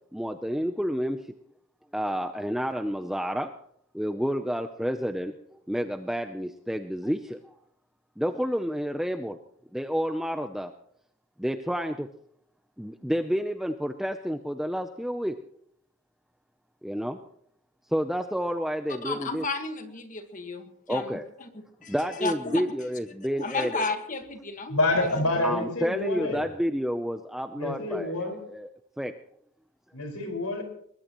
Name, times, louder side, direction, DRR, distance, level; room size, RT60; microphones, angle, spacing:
voice 1, 0.1-1.2 1.9-3.5 3.9-7.4 8.2-9.4 9.7-10.7 11.4-12.1 12.8-15.4 16.8-17.2 17.9-19.4 20.9-21.3 21.9-23.8 25.4-28.7 29.0-29.1, equal, ahead, 6 dB, 0.5 m, -30 dB
voice 2, 19.0-22.6 23.4-24.8 25.1-25.5, left 3 dB, 35° left, 6 dB, 1.6 m, -33 dB
voice 3, 24.7-26.4 27.5-28.4 29.9-30.6, left 2 dB, 85° left, 3 dB, 5.1 m, -27 dB
22.5 x 20.5 x 3.0 m, 0.69 s
head